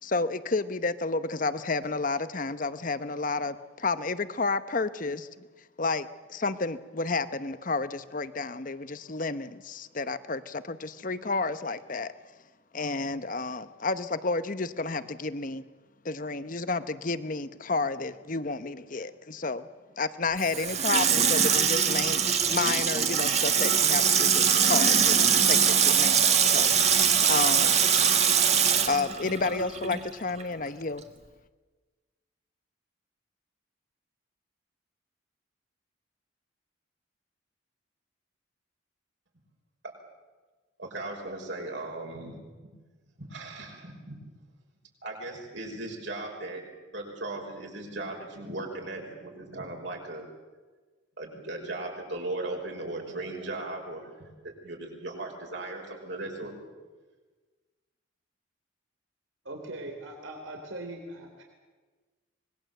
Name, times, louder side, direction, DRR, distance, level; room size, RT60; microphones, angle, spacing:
voice 1, 0.0-5.5 5.8-12.1 12.7-15.6 16.0-19.7 20.0-26.7 27.2-27.8 28.9-31.0, left 3 dB, 45° left, 12 dB, 0.9 m, -31 dB
Water tap faucet / Sink (filling or washing), 20.4-30.1 30.4-30.5, right 7 dB, 35° right, 1.5 m, -23 dB
voice 2, 40.8-42.4 43.2-44.2 45.0-46.6 46.9-50.3 51.2-56.5, right 2 dB, 70° right, 0 dB, 5.8 m, -37 dB
voice 3, 59.4-61.4, right 1 dB, 85° right, 3 dB, 3.7 m, -40 dB
25.0 x 21.0 x 7.8 m, 1.3 s
head